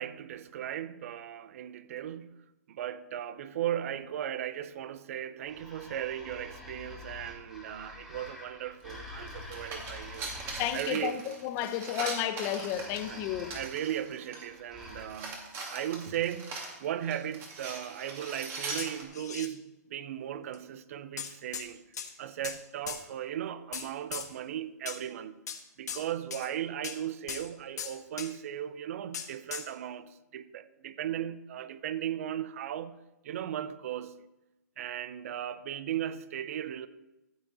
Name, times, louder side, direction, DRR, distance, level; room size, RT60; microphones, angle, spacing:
voice 1, 0.0-2.4 2.7-10.3 10.7-11.2 13.1-21.8 22.2-25.4 25.8-33.0 33.2-34.2 34.8-36.9, right 10 dB, 55° right, 0.7 m, -37 dB
sound 1, 5.4-11.2 12.4-15.1, left 1 dB, 5° right, 2.1 m, -47 dB
sound 2, 8.9-9.0 9.3-14.5 14.8-19.0, right 3 dB, 25° right, 2.5 m, -41 dB
voice 2, 10.6-13.5, left 11 dB, 30° left, 0.9 m, -32 dB
sound 3, 18.8-19.5 20.5-20.6 21.2-21.7 21.9-22.6 22.9-23.0 23.7-24.3 24.9-25.0 25.5-25.6 25.9-26.0 26.3-26.5 26.8-27.0 27.3-27.4 27.8-28.3 29.1-29.7, left 7 dB, 75° left, 1.5 m, -38 dB
14.5 x 7.8 x 4.2 m
hypercardioid pair, 140°, 9 cm